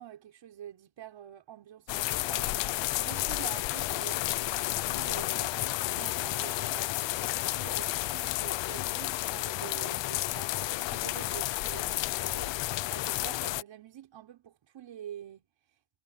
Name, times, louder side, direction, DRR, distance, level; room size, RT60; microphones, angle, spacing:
voice 1, 0.0-7.2 7.5-15.5, right 10 dB, 65° right, 5.3 m, -47 dB
sound 1, 1.9-13.6, left 17 dB, 65° left, 0.5 m, -31 dB
cardioid pair, 160°, 48 cm